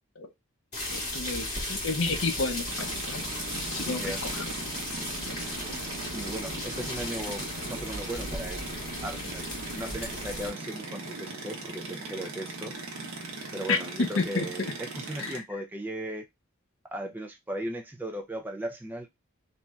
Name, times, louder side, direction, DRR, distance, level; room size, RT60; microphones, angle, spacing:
sound 1, 0.7-10.5, left 1 dB, 35° left, 1.7 m, -36 dB
voice 1, 0.9-3.2 3.7-4.4 13.7-14.7 15.2-15.3, left 3 dB, 70° left, 0.6 m, -31 dB
sound 2, 2.7-15.4, right 2 dB, 80° right, 0.8 m, -39 dB
voice 2, 3.8-4.2 6.1-12.7 13.5-16.2 16.9-19.1, right 1 dB, 10° right, 0.4 m, -37 dB
3.1 x 2.6 x 2.3 m
head